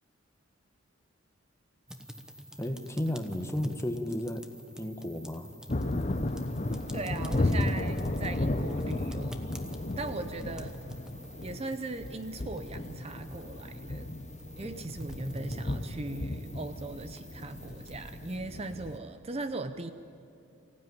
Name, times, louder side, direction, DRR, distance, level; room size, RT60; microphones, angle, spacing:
sound 1, 1.9-18.3, equal, 5° right, 1.0 m, -46 dB
voice 1, 2.6-4.5 4.8-5.5, left 1 dB, 15° left, 7 dB, 1.1 m, -33 dB
Thunder, 5.7-19.0, left 2 dB, 35° left, 0.8 m, -34 dB
voice 2, 6.9-9.4 10.0-10.8 11.4-14.1 14.6-19.9, right 2 dB, 30° right, 9 dB, 0.6 m, -39 dB
24.0 x 15.5 x 9.5 m, 2.7 s
head